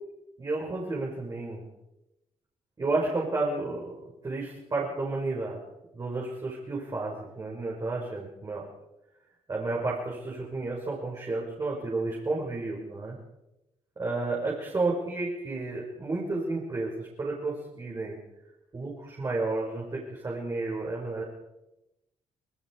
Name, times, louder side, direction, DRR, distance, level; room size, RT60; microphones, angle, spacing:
voice 1, 0.4-1.6 2.8-5.6 5.9-8.6 9.5-13.2 14.0-18.2 18.7-21.2, right 3 dB, 30° right, -4 dB, 6.3 m, -31 dB
26.5 x 21.0 x 5.0 m, 0.92 s
cardioid pair, 115°, 12 cm